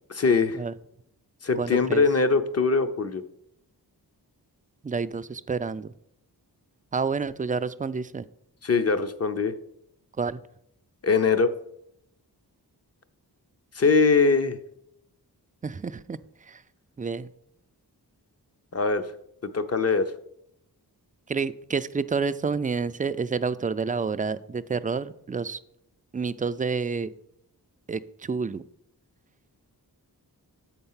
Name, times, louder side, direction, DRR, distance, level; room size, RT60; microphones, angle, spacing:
voice 1, 0.2-0.6 1.4-3.2 8.6-9.5 11.0-11.5 13.7-14.6 18.7-19.0 19.5-20.1, left 4 dB, 40° left, 10 dB, 0.7 m, -22 dB
voice 2, 1.6-2.0 4.8-5.9 6.9-8.2 10.2-10.4 15.6-16.6 17.0-17.3 21.3-25.6 26.1-27.1 27.9-28.6, right 5 dB, 20° right, 13 dB, 0.3 m, -29 dB
7.7 x 4.4 x 5.6 m, 0.75 s
cardioid pair, 50°, 41 cm